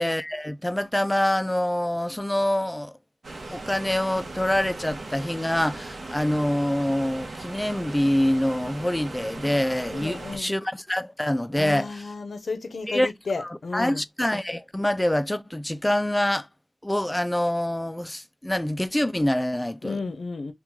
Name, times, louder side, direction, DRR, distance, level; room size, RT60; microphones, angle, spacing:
voice 1, 0.0-3.0 3.5-12.0 12.9-13.1 13.4-16.5 16.8-20.0, left 1 dB, 15° left, 0.3 m, -25 dB
sound 1, 3.2-10.4, right 2 dB, 85° right, 0.9 m, -38 dB
voice 2, 9.9-10.5 11.5-14.0 19.8-20.5, left 4 dB, 85° left, 0.5 m, -33 dB
3.0 x 2.3 x 3.6 m
cardioid pair, 50°, 0 cm